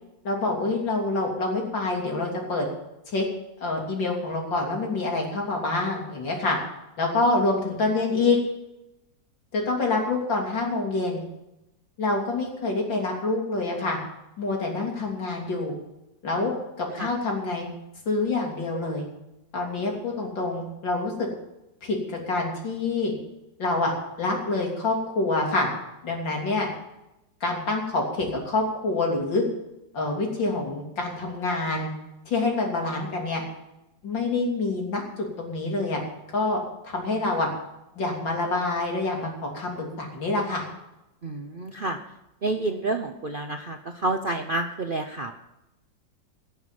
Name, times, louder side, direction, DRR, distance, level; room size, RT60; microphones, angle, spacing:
voice 1, 0.2-2.7 3.1-3.2 3.6-6.6 7.0-8.4 9.5-11.2 12.0-14.0 14.4-15.7 16.2-17.7 18.1-19.1 19.5-21.3 21.8-23.1 23.6-23.9 24.2-25.7 26.0-26.7 27.4-29.4 29.9-31.9 32.3-33.4 34.0-36.0 36.3-37.5 38.0-40.7, left 3 dB, 90° left, 0 dB, 3.8 m, -26 dB
voice 2, 41.2-42.0 42.4-45.3, right 2 dB, 55° right, 6 dB, 0.5 m, -29 dB
18.5 x 7.0 x 7.5 m, 0.91 s
omnidirectional pair, 2.0 m